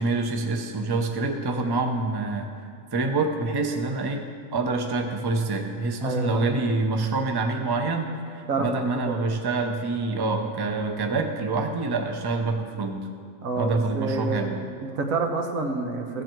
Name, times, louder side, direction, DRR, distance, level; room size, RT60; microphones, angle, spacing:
voice 1, 0.0-2.5 2.9-13.0 13.6-14.6, right 3 dB, 25° right, 4 dB, 0.6 m, -26 dB
voice 2, 6.0-6.9 8.5-8.9 13.4-16.2, right 3 dB, 90° right, 3 dB, 1.5 m, -28 dB
15.0 x 7.5 x 4.5 m, 2.3 s
omnidirectional pair, 1.4 m